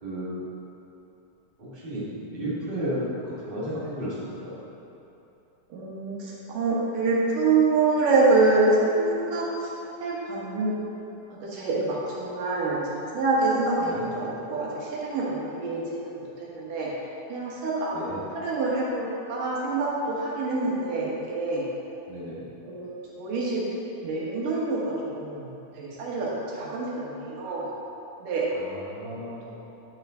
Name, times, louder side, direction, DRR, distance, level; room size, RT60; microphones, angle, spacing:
voice 1, 0.0-0.4 1.6-4.6 13.8-14.0 17.9-18.2 22.1-22.5 28.6-29.5, equal, 20° right, -9 dB, 1.5 m, -33 dB
voice 2, 5.7-9.7 10.0-10.7 11.4-16.9 17.3-21.7 22.6-23.6 24.0-27.7 28.2-28.5, right 3 dB, 85° right, -6 dB, 3.1 m, -26 dB
10.5 x 5.7 x 3.8 m, 3.0 s
omnidirectional pair, 3.7 m